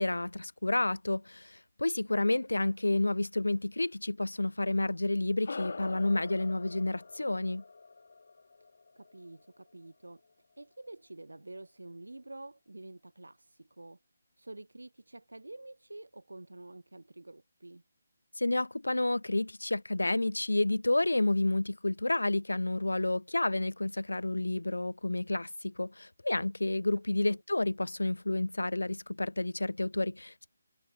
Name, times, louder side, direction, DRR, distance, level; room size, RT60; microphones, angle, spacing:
voice 1, 0.0-7.6 18.4-30.5, left 2 dB, 75° left, 0.4 m, -30 dB
voice 2, 2.0-2.6 9.0-10.2 10.6-14.0 14.4-17.8 27.3-27.4, right 2 dB, 75° right, 1.1 m, -48 dB
sound 1, 5.4-10.2, left 4 dB, 55° left, 3.0 m, -45 dB
figure-of-eight pair, 150°, 0 cm